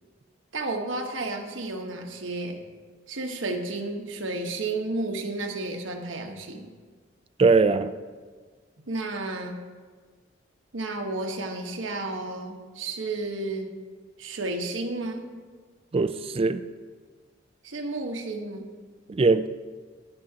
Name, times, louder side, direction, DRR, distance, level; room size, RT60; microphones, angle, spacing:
voice 1, 0.5-2.6 3.1-6.7 8.9-9.6 10.7-13.7 14.2-15.3 17.6-18.7, right 2 dB, 90° right, 3 dB, 1.1 m, -32 dB
voice 2, 7.4-7.9 15.9-16.6 19.1-19.5, right 4 dB, 30° right, 12 dB, 0.4 m, -21 dB
12.5 x 10.5 x 2.8 m, 1.5 s
head